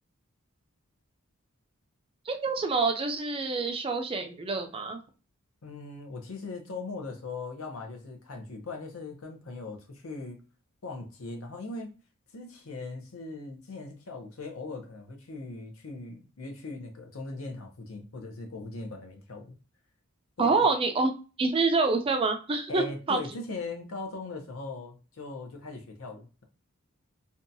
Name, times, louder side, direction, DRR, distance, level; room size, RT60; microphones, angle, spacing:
voice 1, 2.3-5.0 20.4-21.1 21.4-23.2, right 3 dB, 25° right, 0.4 m, -26 dB
voice 2, 5.6-10.4 10.8-11.9 12.3-19.5 20.4-20.5 22.7-26.4, left 3 dB, 75° left, 0.7 m, -39 dB
2.7 x 2.2 x 2.6 m
head